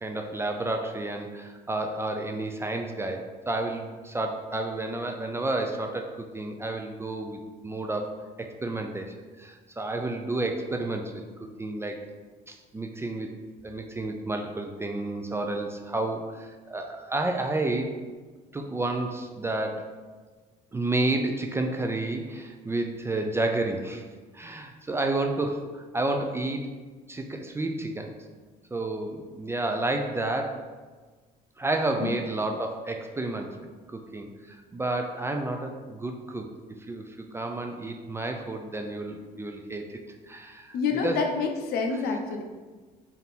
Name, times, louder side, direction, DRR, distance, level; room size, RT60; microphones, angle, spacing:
voice 1, 0.0-11.1 11.6-12.0 12.5-13.3 13.6-17.9 18.5-19.9 20.7-24.0 24.3-26.7 27.1-28.1 28.7-30.6 31.6-33.6 33.9-36.5 36.9-40.0 40.3-40.7 41.0-41.2, right 2 dB, 15° right, 3 dB, 0.3 m, -30 dB
voice 2, 40.7-42.4, left 4 dB, 70° left, 3 dB, 0.6 m, -27 dB
3.5 x 2.7 x 4.0 m, 1.4 s
cardioid pair, 110°, 17 cm